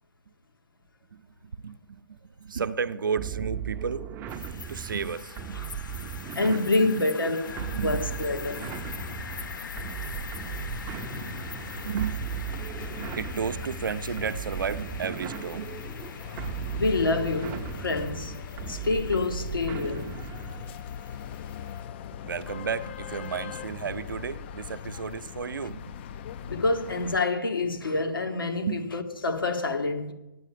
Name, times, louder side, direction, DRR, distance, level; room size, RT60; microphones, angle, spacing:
voice 1, 1.5-4.0 4.7-5.6 6.4-7.0 7.7-8.0 9.7-9.9 11.2-11.6 11.8-12.2 12.8-15.7 22.1-26.0 28.6-28.9, right 6 dB, 70° right, 0.7 m, -33 dB
sound 1, 3.2-20.8, right 8 dB, 20° right, 0.5 m, -37 dB
sound 2, 4.3-21.8, left 5 dB, 65° left, 1.4 m, -44 dB
voice 2, 6.3-7.5 7.8-8.6 10.0-10.1 16.7-20.1 26.5-30.1, left 3 dB, 80° left, 1.9 m, -27 dB
sound 3, 7.4-27.2, left 8 dB, 30° left, 0.4 m, -40 dB
9.2 x 8.9 x 8.5 m
figure-of-eight pair, 135°, 11 cm